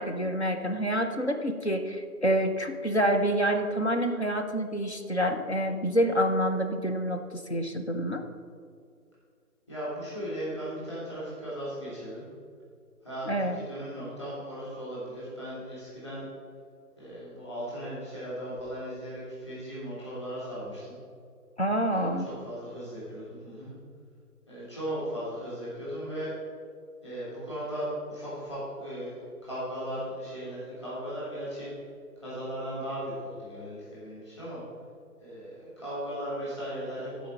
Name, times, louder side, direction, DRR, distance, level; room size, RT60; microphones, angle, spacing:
voice 1, 0.0-8.2 13.3-13.6 21.6-22.3, equal, 45° left, 5 dB, 0.7 m, -27 dB
voice 2, 9.7-12.2 13.0-16.2 17.0-20.9 21.9-23.7 24.5-26.3 27.0-31.7 32.2-34.6 35.2-37.3, equal, 20° left, -10 dB, 2.4 m, -37 dB
13.0 x 5.0 x 5.3 m, 2.3 s
figure-of-eight pair, 165°, 47 cm